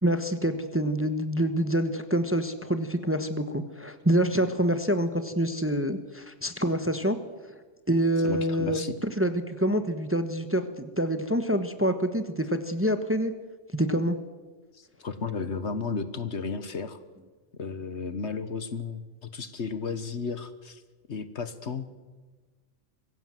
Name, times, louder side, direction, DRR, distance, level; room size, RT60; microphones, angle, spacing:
voice 1, 0.0-7.2 7.5-7.6 7.9-13.3 13.7-14.2, right 1 dB, 10° right, 9 dB, 1.1 m, -26 dB
voice 2, 8.2-9.0 14.7-17.0 17.6-19.0 19.3-20.8 21.1-22.0, left 4 dB, 55° left, 12 dB, 1.5 m, -33 dB
24.5 x 16.0 x 7.6 m, 1.3 s
omnidirectional pair, 1.4 m